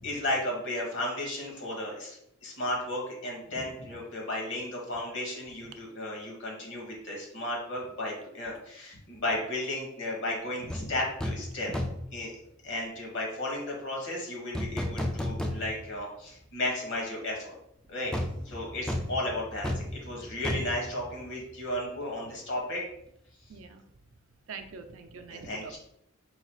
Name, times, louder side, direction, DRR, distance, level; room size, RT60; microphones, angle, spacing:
voice 1, 0.0-11.7 12.1-12.3 12.6-17.5 17.9-18.1 18.4-22.8 25.3-25.8, left 1 dB, 60° left, -1 dB, 1.4 m, -34 dB
sound 1, 10.7-10.9 11.2-11.5 11.7-12.1 14.5-16.0 16.4-16.5 18.1-21.8 22.0-22.2, left 1 dB, 5° left, 0.3 m, -33 dB
voice 2, 23.5-23.8 24.5-25.8, right 5 dB, 70° right, 7 dB, 0.5 m, -44 dB
3.9 x 2.3 x 4.4 m, 0.76 s
head